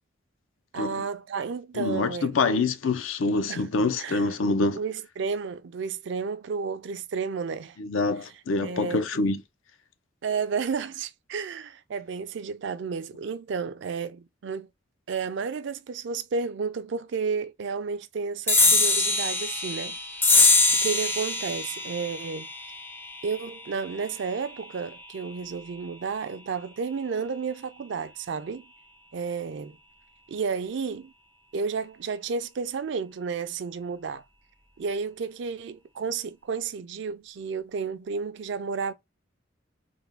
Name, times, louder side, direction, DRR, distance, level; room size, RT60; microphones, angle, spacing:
voice 1, 0.7-2.6 3.5-3.6 4.0-4.3 4.8-7.8 8.6-9.3 10.2-14.7 15.1-20.0 20.8-22.5 23.2-28.7 29.1-29.8 30.3-31.1 31.5-34.2 34.8-38.9, right 5 dB, 65° right, 0.4 m, -32 dB
voice 2, 1.8-4.8 7.8-9.4, left 3 dB, 85° left, 0.5 m, -26 dB
sound 1, 18.5-25.3, left 3 dB, 10° left, 0.4 m, -24 dB
3.4 x 2.2 x 3.3 m
head